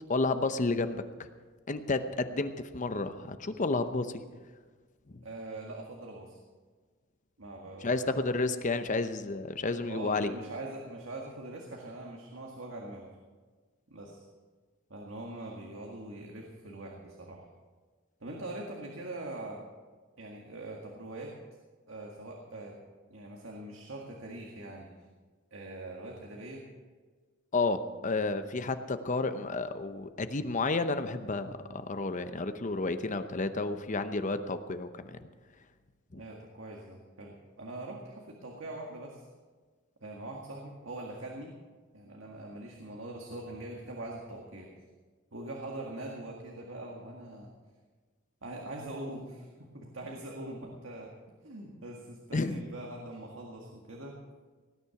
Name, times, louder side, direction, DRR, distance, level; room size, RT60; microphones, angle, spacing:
voice 1, 0.1-1.3 1.7-4.2 5.1-5.2 7.8-10.3 27.5-35.2 36.1-36.2 52.3-52.6, left 3 dB, 40° left, 10 dB, 0.8 m, -31 dB
voice 2, 5.2-6.4 7.4-8.1 9.8-13.1 13.9-14.3 14.9-17.5 18.2-19.7 20.2-21.4 21.9-22.8 23.1-24.9 25.5-26.7 36.2-39.3 40.0-41.6 41.9-44.7 45.3-47.5 48.4-51.1 51.4-54.2, right 2 dB, 85° right, 0 dB, 1.9 m, -42 dB
18.0 x 10.0 x 5.9 m, 1.4 s
head